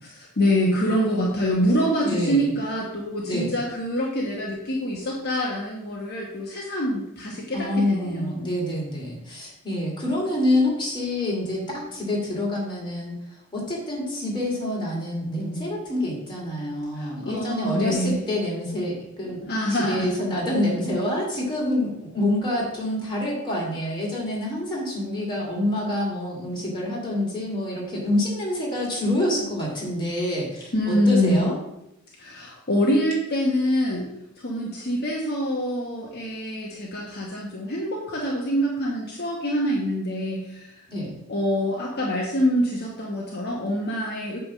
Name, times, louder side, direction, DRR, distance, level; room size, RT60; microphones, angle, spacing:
voice 1, 0.0-8.4 16.9-18.2 19.4-20.1 30.7-31.5 32.2-34.1 34.4-40.8 41.3-44.4, equal, 50° left, -2 dB, 1.1 m, -25 dB
voice 2, 2.0-2.5 3.3-3.5 7.5-13.1 13.5-31.5 40.9-41.2, left 1 dB, 20° left, -4 dB, 2.7 m, -27 dB
8.6 x 3.5 x 6.2 m, 0.85 s
head